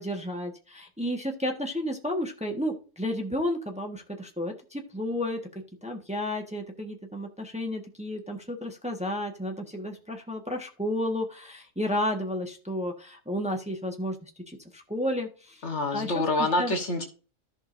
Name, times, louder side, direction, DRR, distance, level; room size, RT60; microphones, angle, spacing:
voice 1, 0.0-5.4 5.8-15.6 15.9-16.7, left 1 dB, 5° right, 2 dB, 1.3 m, -32 dB
voice 2, 15.6-17.0, left 2 dB, 55° left, 5 dB, 1.5 m, -26 dB
14.5 x 5.4 x 2.6 m, 0.36 s
omnidirectional pair, 1.5 m